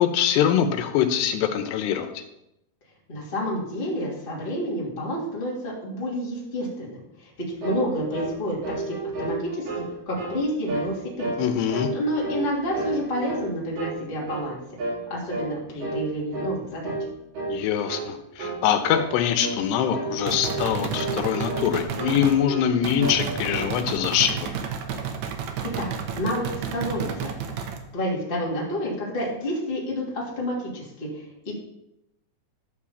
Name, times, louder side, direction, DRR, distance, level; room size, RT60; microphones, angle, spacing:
voice 1, 0.0-2.2 11.4-11.9 17.5-24.5, left 9 dB, 85° left, 7 dB, 2.9 m, -23 dB
voice 2, 3.1-11.3 11.9-14.6 15.1-16.9 25.8-25.9 26.1-27.5 27.9-31.5, equal, 15° left, -5 dB, 2.2 m, -29 dB
sound 1, 7.6-7.9 8.1-8.4 8.6-9.9 10.2-10.4 10.7-10.9 11.2-11.4 11.7-12.5 12.7-13.5 13.7-14.0 14.3-14.5 14.8-15.0 15.3-15.5 15.8-16.1 16.3-16.5 16.8-17.1 17.3-17.6 17.9-18.1 18.4-18.6 18.9-19.1 19.4-19.6 19.9-20.7 20.9-21.7 22.0-22.7 23.0-23.7, right 2 dB, 55° right, 5.8 m, -31 dB
sound 2, 20.3-22.4 22.8-27.8, right 7 dB, 85° right, 1.6 m, -31 dB
11.5 x 4.9 x 7.1 m, 0.84 s
omnidirectional pair, 4.7 m